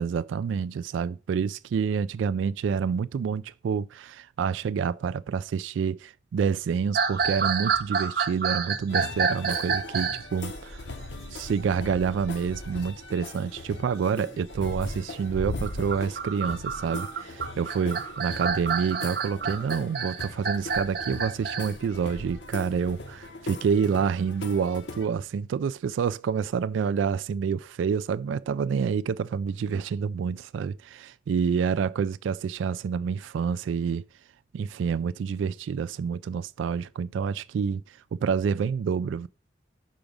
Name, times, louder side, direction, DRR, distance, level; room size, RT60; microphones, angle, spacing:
voice 1, 0.0-10.9 11.3-34.0 34.5-39.3, right 6 dB, 85° right, 0.3 m, -28 dB
sound 1, 6.9-10.3 11.7-12.3 12.7-12.8 13.5-13.8 15.5-21.7, right 5 dB, 55° right, 0.9 m, -29 dB
sound 2, 8.9-25.1, left 2 dB, 75° left, 1.1 m, -39 dB
5.9 x 5.1 x 5.2 m
head